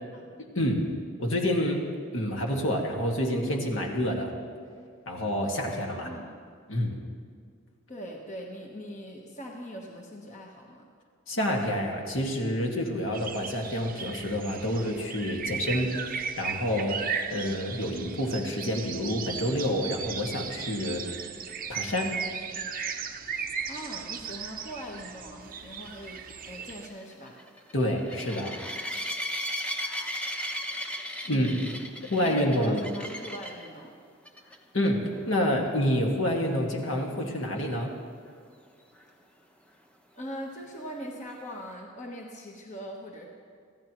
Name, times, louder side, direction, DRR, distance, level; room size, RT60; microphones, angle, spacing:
voice 1, 0.4-0.9 1.2-1.9 2.1-4.3 5.1-6.1 6.7-7.0 11.3-21.0 21.7-22.2 27.7-28.5 31.3-31.6 32.0-32.8 34.7-37.9, equal, 65° left, 0 dB, 1.9 m, -28 dB
voice 2, 5.9-6.4 7.9-10.8 23.7-27.4 31.2-31.8 32.2-33.9 40.1-43.3, equal, 35° left, 0 dB, 1.2 m, -41 dB
sound 1, 13.1-26.9, right 6 dB, 40° right, 0.7 m, -36 dB
sound 2, 25.7-33.7 34.2-34.6 34.8-34.9 35.3-35.4 39.0-39.1, equal, 5° left, 0.9 m, -36 dB
24.5 x 15.5 x 3.1 m, 2.1 s
head